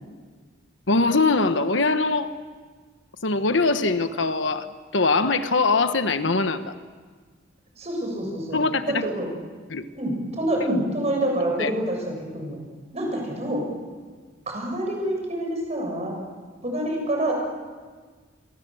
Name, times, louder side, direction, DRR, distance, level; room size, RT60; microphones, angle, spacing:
voice 1, 0.9-2.3 3.2-6.7 8.5-9.1 9.7-9.9 11.6-11.7, left 3 dB, 70° left, 10 dB, 1.2 m, -22 dB
voice 2, 7.8-8.6 8.9-9.3 10.0-12.6 12.9-13.7 14.5-16.2 16.6-17.3, right 1 dB, 35° right, 1 dB, 7.5 m, -27 dB
29.0 x 23.0 x 7.8 m, 1.5 s
head